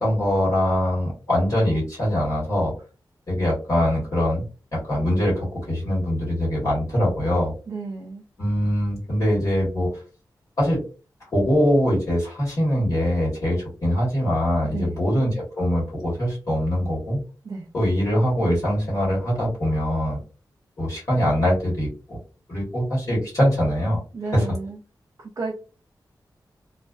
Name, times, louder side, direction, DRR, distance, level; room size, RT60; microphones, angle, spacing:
voice 1, 0.0-2.7 3.3-4.4 4.7-7.5 8.4-9.9 10.6-10.8 11.3-17.2 17.7-20.2 20.8-22.2 22.5-24.0 24.3-24.4, equal, 50° left, -6 dB, 1.3 m, -22 dB
voice 2, 7.7-8.2 14.7-15.0 17.4-17.7 24.1-24.8 25.2-25.5, right 3 dB, 50° right, 0 dB, 0.4 m, -32 dB
2.4 x 2.3 x 2.3 m, 0.35 s
wide cardioid pair, 140°, 8 cm